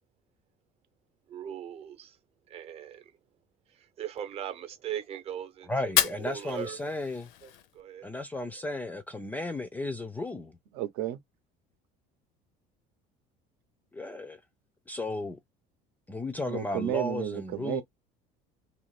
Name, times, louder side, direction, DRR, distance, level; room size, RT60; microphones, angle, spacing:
voice 1, 1.3-2.2 2.5-3.2 3.7-6.9 7.4-8.1, right 10 dB, 35° right, 0.8 m, -40 dB
voice 2, 5.7-7.3 8.0-10.6 13.9-14.4 14.9-15.4 16.1-17.8, left 2 dB, 10° left, 0.3 m, -34 dB
Fire, 5.8-7.8, left 13 dB, 75° left, 0.5 m, -31 dB
voice 3, 10.7-11.2 16.5-17.8, right 12 dB, 70° right, 0.8 m, -32 dB
2.8 x 2.5 x 3.2 m
cardioid pair, 155°, 17 cm